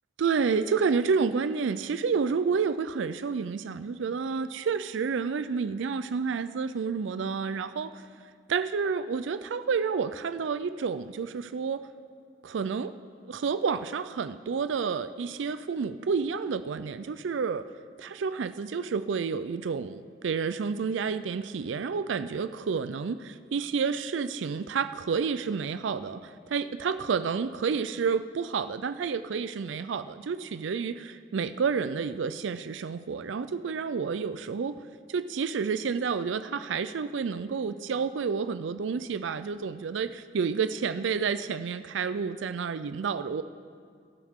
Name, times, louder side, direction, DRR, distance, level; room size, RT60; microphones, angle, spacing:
voice 1, 0.2-7.9 8.5-11.8 12.4-12.9 13.3-17.6 18.0-34.8 35.1-43.4, right 5 dB, 80° right, 12 dB, 0.4 m, -30 dB
22.0 x 11.5 x 3.6 m, 2.2 s
head